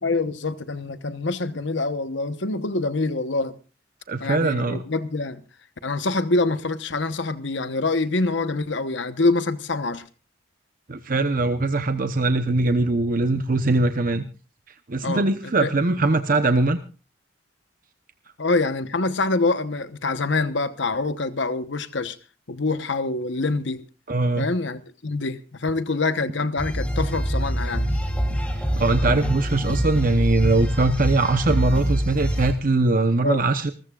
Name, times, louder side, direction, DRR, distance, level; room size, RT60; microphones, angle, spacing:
voice 1, 0.0-3.6 4.2-5.4 5.8-10.0 15.0-15.7 18.4-22.2 22.5-23.8 24.4-27.9 33.2-33.4, left 3 dB, 65° left, 1.1 m, -25 dB
voice 2, 4.1-4.8 10.9-14.2 14.9-16.8 24.1-24.5 28.7-33.7, right 2 dB, 45° right, 0.9 m, -21 dB
sound 1, 26.6-32.5, equal, 5° left, 2.3 m, -25 dB
28.0 x 14.0 x 2.4 m
head